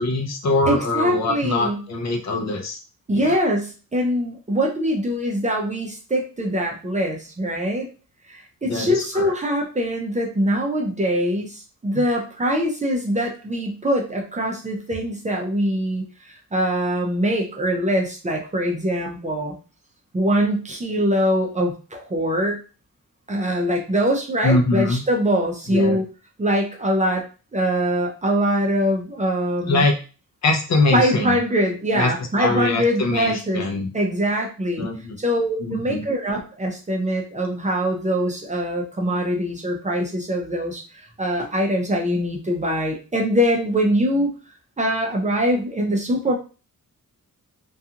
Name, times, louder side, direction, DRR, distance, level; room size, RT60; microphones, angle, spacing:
voice 1, 0.0-2.8 3.1-3.4 8.6-9.3 24.4-25.0 25.7-26.0 29.7-29.9 30.4-31.4 31.9-32.1 32.4-33.9 34.8-35.2 35.6-36.1, left 2 dB, 55° left, 3 dB, 0.6 m, -22 dB
voice 2, 0.7-1.8 3.1-7.9 8.3-19.5 20.1-22.6 23.3-26.0 26.4-27.2 27.5-29.8 30.9-33.6 33.9-34.9 35.2-44.3 44.8-46.4, equal, 20° right, -1 dB, 0.4 m, -23 dB
2.4 x 2.3 x 2.7 m, 0.34 s
wide cardioid pair, 170°, 33 cm